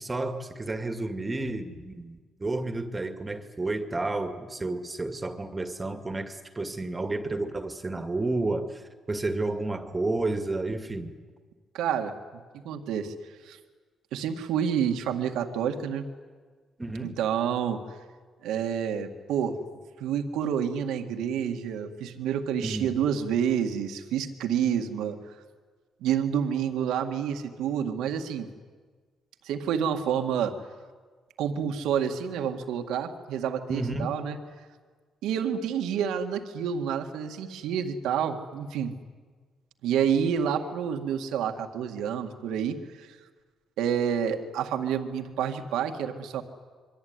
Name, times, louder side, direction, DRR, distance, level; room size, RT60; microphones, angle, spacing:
voice 1, 0.0-11.1 16.8-17.2 22.6-23.0 33.7-34.2, right 2 dB, 20° right, 7 dB, 2.1 m, -31 dB
voice 2, 11.7-12.1 12.5-13.1 13.5-13.6 14.1-16.1 17.0-17.8 18.4-19.6 20.0-25.3 26.0-28.5 29.4-30.5 31.4-34.4 35.2-38.9 39.8-43.2 43.8-46.4, right 8 dB, 90° right, 5 dB, 2.0 m, -28 dB
27.0 x 23.0 x 9.6 m, 1.5 s
cardioid pair, 90°, 0 cm